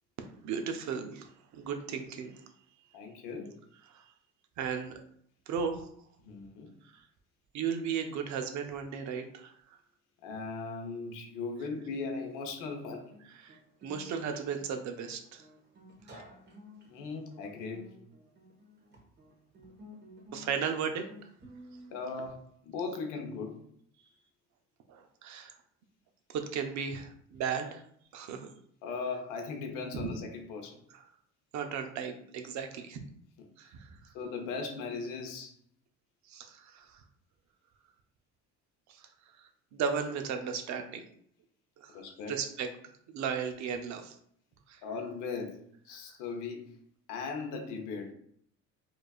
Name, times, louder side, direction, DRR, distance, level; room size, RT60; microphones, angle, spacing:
voice 1, 0.4-2.3 3.9-4.0 4.6-4.9 5.5-5.9 6.8-7.0 7.5-9.5 13.4-15.5 16.1-16.2 20.3-21.0 24.9-25.5 26.3-27.8 28.1-28.5 29.9-30.1 30.9-31.0 31.5-33.0 33.6-34.0 36.3-37.0 38.9-39.1 39.4-41.0 41.8-42.7 43.1-44.1 44.7-44.8, right 6 dB, 60° right, 6 dB, 0.6 m, -35 dB
voice 2, 2.9-3.5 6.2-6.7 10.2-13.1 16.9-17.9 21.9-22.4 22.6-23.6 28.8-30.8 34.1-35.5 41.9-42.4 44.8-46.7 47.1-48.1, left 4 dB, 80° left, 4 dB, 0.8 m, -38 dB
Guitar, 12.7-22.0, left 1 dB, 35° right, 1.1 m, -54 dB
4.5 x 2.5 x 2.3 m, 0.64 s
cardioid pair, 100°, 32 cm